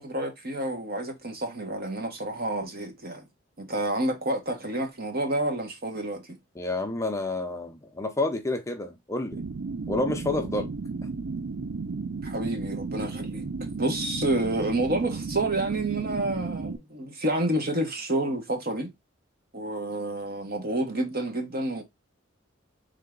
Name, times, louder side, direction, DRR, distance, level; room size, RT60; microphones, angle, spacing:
voice 1, 0.0-3.3 3.6-6.4 12.2-13.5 13.8-18.9 19.5-21.8, right 1 dB, 50° right, 1.3 m, -29 dB
voice 2, 6.5-9.4 9.9-10.7, left 2 dB, 15° left, 0.6 m, -29 dB
sound 1, 9.3-16.8, right 4 dB, 85° right, 0.6 m, -34 dB
3.8 x 3.4 x 3.7 m
head